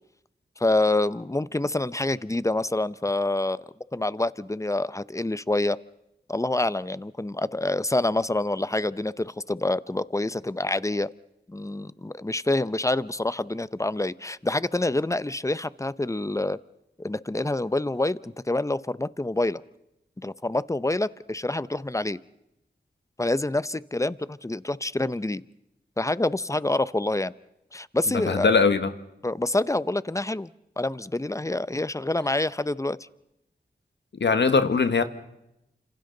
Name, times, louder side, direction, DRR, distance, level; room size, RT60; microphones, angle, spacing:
voice 1, 0.6-3.6 3.9-5.8 6.3-11.1 11.5-16.6 17.0-19.6 20.2-22.2 23.2-25.4 26.0-27.3 27.7-28.5 29.2-30.5 30.8-33.0, left 2 dB, 15° left, 0.7 m, -27 dB
voice 2, 28.1-28.9 34.2-35.0, left 4 dB, 80° left, 1.5 m, -21 dB
29.5 x 26.5 x 4.0 m
cardioid pair, 50°, 18 cm